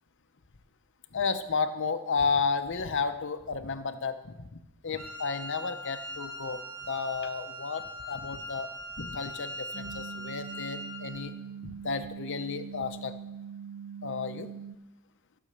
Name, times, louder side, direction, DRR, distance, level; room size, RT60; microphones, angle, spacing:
voice 1, 1.1-8.7 9.0-11.3 11.6-13.1 14.0-14.5, left 5 dB, 55° left, 9 dB, 0.8 m, -32 dB
Wind instrument woodwind instrument, 4.9-11.3, equal, 75° right, 3.3 m, -41 dB
sound 1, 9.7-14.8, right 7 dB, 50° right, 0.5 m, -42 dB
14.0 x 6.2 x 6.8 m, 0.93 s
head